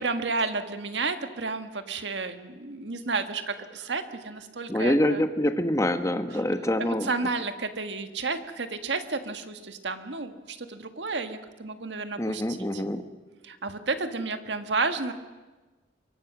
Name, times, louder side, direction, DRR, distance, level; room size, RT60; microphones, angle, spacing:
voice 1, 0.0-5.2 6.8-12.4 12.7-12.8 13.4-15.1, right 3 dB, 85° right, 8 dB, 1.6 m, -31 dB
voice 2, 4.7-7.1 12.2-13.0, left 1 dB, 20° left, 8 dB, 1.3 m, -25 dB
25.0 x 23.0 x 6.1 m, 1.2 s
head